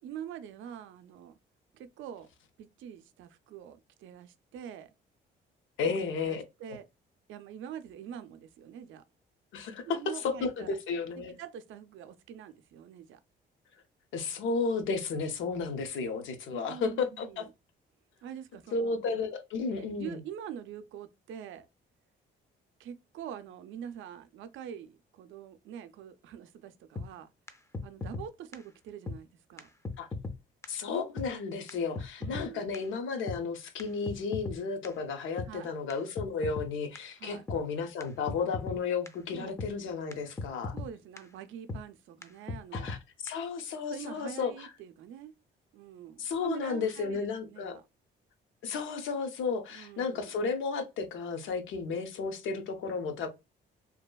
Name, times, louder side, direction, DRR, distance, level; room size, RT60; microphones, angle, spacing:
voice 1, 0.0-1.4 1.7-2.3 2.6-4.9 5.8-6.8 7.3-9.0 9.8-10.7 11.4-13.2 16.5-17.5 18.2-19.0 19.8-21.7 22.8-27.3 27.8-29.7 32.2-32.7 35.5-35.7 37.2-37.4 39.3-39.6 40.7-43.0 43.8-45.3 45.7-47.8 49.7-50.3, right 9 dB, 75° right, 0.4 m, -45 dB
voice 2, 5.8-6.4 9.5-11.4 14.1-17.5 18.7-20.2 30.0-30.1 30.7-40.8 42.7-44.7 46.2-47.8 48.6-53.3, left 5 dB, 80° left, 0.6 m, -33 dB
sound 1, 27.0-27.1 27.5-27.6 27.7-28.3 28.5-28.6 29.1-29.2 29.6-29.7 29.8-30.4 30.6-30.7 31.2-31.3 31.7-31.8 32.0-32.5 32.7-32.8 33.3-33.4 33.8-34.6 34.8-34.9 35.4-35.5 35.9-36.0 36.2-36.7 37.0-37.1 37.5-37.6 38.0-38.1 38.3-38.8 39.1-39.2 39.6-39.7 40.1-40.2 40.4-40.9 41.2-41.3 41.7-41.8 42.2-42.3 42.5-43.0 43.3-43.4, left 3 dB, 15° left, 0.4 m, -36 dB
2.8 x 2.2 x 2.2 m
cardioid pair, 90°, 20 cm